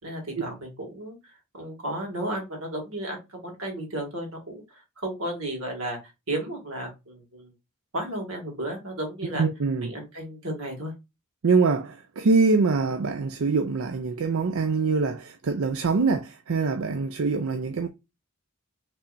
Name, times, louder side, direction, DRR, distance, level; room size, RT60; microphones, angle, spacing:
voice 1, 0.0-4.6 5.0-6.0 6.3-7.5 7.9-9.4 9.8-10.9, right 1 dB, 90° right, 2.2 m, -33 dB
voice 2, 9.4-9.9 11.4-17.9, right 4 dB, 70° right, 0.5 m, -24 dB
5.7 x 3.4 x 2.6 m
head